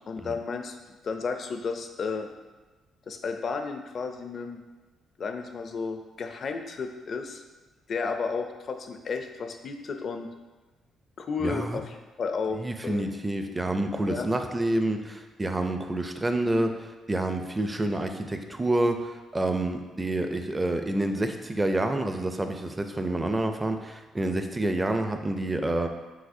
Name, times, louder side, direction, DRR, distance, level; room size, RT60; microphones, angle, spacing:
voice 1, 0.1-2.3 3.1-4.6 5.2-7.4 7.9-10.3 11.2-13.1 14.1-14.3, left 5 dB, 50° left, 6 dB, 0.4 m, -33 dB
voice 2, 11.4-11.8 12.5-25.9, right 1 dB, 20° right, 6 dB, 0.4 m, -28 dB
4.8 x 3.8 x 2.6 m, 1.2 s
cardioid pair, 90°, 0 cm